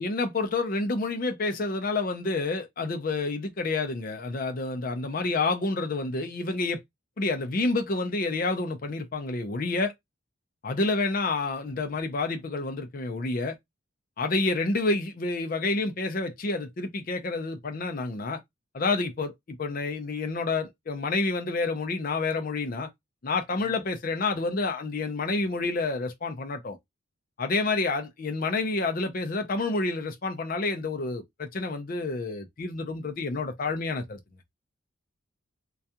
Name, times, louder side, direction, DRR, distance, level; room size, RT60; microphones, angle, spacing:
voice 1, 0.0-6.8 7.2-9.9 10.6-13.6 14.2-18.4 18.7-22.9 23.2-26.8 27.4-34.2, left 3 dB, 40° left, 0.4 m, -29 dB
2.3 x 2.3 x 2.7 m
head